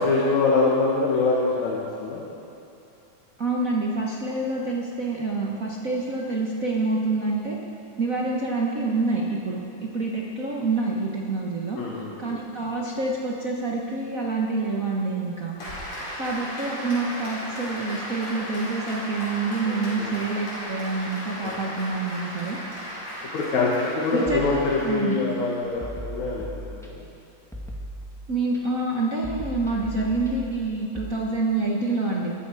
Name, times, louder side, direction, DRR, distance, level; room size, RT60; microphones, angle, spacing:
voice 1, 0.0-2.2 11.8-12.2 19.7-20.1 21.4-21.5 23.3-27.0, left 3 dB, 65° left, -5 dB, 3.0 m, -24 dB
voice 2, 3.4-7.6 8.0-11.8 12.2-15.6 16.2-22.6 23.5-23.8 24.1-25.2 28.3-32.3, right 3 dB, 70° right, -3 dB, 0.7 m, -27 dB
Applause, 15.6-25.7, equal, 40° left, 5.3 m, -36 dB
sound 1, 24.3-25.2 25.8-27.2 27.5-28.6 29.2-31.1, equal, ahead, 0.8 m, -38 dB
21.5 x 12.0 x 4.9 m, 2.8 s
omnidirectional pair, 3.6 m